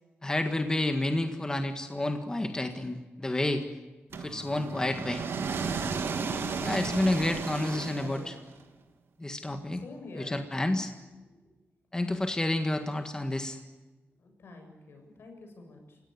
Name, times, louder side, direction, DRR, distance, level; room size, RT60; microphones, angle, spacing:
voice 1, 0.2-3.6 4.2-5.2 6.6-8.3 9.2-9.8 10.1-10.9 11.9-13.6, left 1 dB, 15° left, 6 dB, 1.7 m, -30 dB
sound 1, 4.1-8.5, right 5 dB, 80° right, 2.7 m, -34 dB
voice 2, 7.4-8.2 9.2-9.3 9.8-10.4 11.2-11.3 14.2-16.0, left 3 dB, 80° left, 4 dB, 7.5 m, -48 dB
29.5 x 17.0 x 9.6 m, 1.2 s
wide cardioid pair, 110°, 4 cm